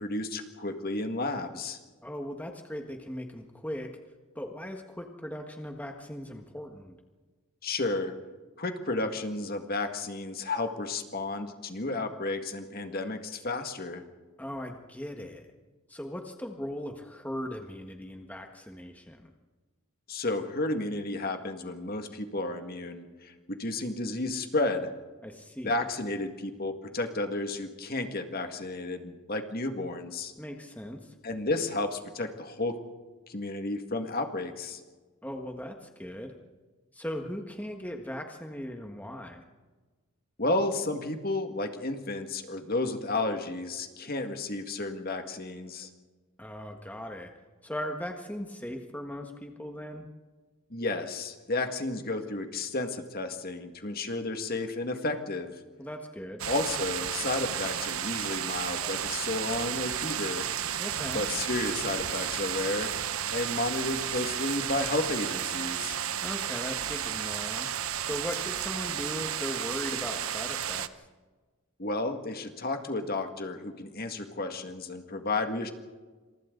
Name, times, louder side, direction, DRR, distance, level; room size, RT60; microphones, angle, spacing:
voice 1, 0.0-1.8 7.6-8.1 8.6-14.0 20.1-24.9 25.6-30.3 31.2-32.8 33.3-34.8 40.4-45.9 50.7-55.6 56.5-60.5 61.1-62.9 63.3-66.0 71.8-75.7, left 2 dB, 45° left, 5 dB, 2.0 m, -32 dB
voice 2, 2.0-3.9 4.3-7.0 14.4-15.5 15.9-19.3 25.2-25.7 30.4-31.1 35.2-36.3 36.9-39.4 46.4-47.3 47.6-50.0 55.8-56.4 60.8-61.3 66.2-67.7 68.0-71.1, equal, 5° left, 3 dB, 1.6 m, -38 dB
sound 1, 56.4-70.9, right 9 dB, 75° right, 1.0 m, -33 dB
28.0 x 27.0 x 4.0 m, 1.3 s
head